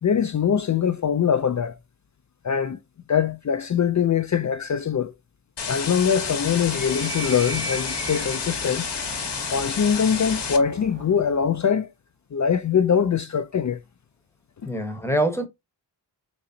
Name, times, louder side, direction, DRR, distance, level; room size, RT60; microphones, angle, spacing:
voice 1, 0.0-1.7 2.4-2.8 3.1-5.1 5.7-8.9 9.5-11.9 12.3-13.8, left 7 dB, 45° left, 0.4 m, -22 dB
sound 1, 5.6-10.6, left 6 dB, 70° left, 1.1 m, -30 dB
Animal, 5.8-11.6, right 3 dB, 30° right, 0.7 m, -38 dB
voice 2, 14.7-15.5, right 1 dB, 5° left, 0.9 m, -25 dB
4.1 x 3.0 x 2.7 m
wide cardioid pair, 75°, 43 cm